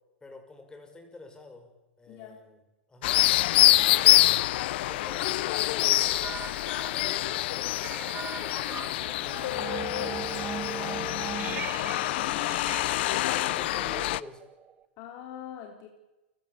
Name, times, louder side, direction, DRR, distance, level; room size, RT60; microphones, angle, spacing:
voice 1, 0.2-2.6 2.9-3.2 4.8-6.3 6.7-12.2 13.3-14.4, left 2 dB, 10° left, 5 dB, 6.3 m, -48 dB
voice 2, 2.1-2.4 3.8-4.4 8.7-8.9 12.1-13.5 15.0-15.9, left 9 dB, 50° left, 2 dB, 3.5 m, -44 dB
sound 1, 3.0-14.2, left 16 dB, 65° left, 0.7 m, -26 dB
sound 2, 5.9-14.8, right 7 dB, 25° right, 1.5 m, -40 dB
29.0 x 15.0 x 7.5 m, 1.0 s
hypercardioid pair, 110°, 6 cm